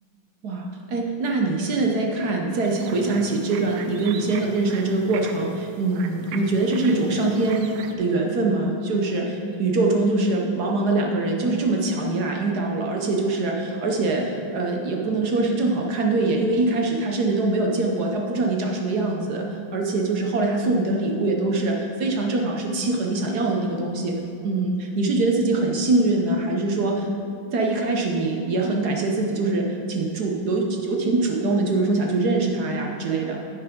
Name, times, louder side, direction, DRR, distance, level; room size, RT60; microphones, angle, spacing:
voice 1, 0.4-24.1 24.4-27.1 27.5-33.4, right 2 dB, 60° right, 0 dB, 1.2 m, -23 dB
sound 1, 2.6-7.9, right 6 dB, 85° right, 1.5 m, -40 dB
10.0 x 8.8 x 3.7 m, 2.6 s
omnidirectional pair, 2.3 m